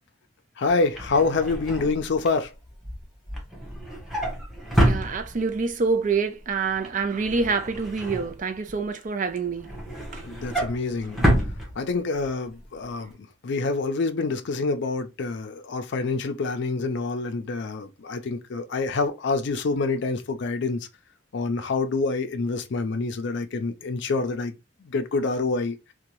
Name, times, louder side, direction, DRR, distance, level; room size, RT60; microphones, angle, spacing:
voice 1, 0.6-2.5 10.2-11.2 11.8-13.1 13.4-20.9 21.3-24.5 24.8-25.8, left 3 dB, 65° left, 0.4 m, -26 dB
Drawer open or close, 0.7-5.7 6.1-6.4 6.7-8.9 9.3-12.3 12.6-12.8 13.1-13.2, equal, ahead, 0.8 m, -28 dB
voice 2, 4.8-9.7, right 4 dB, 45° right, 0.4 m, -26 dB
2.7 x 2.2 x 2.9 m
head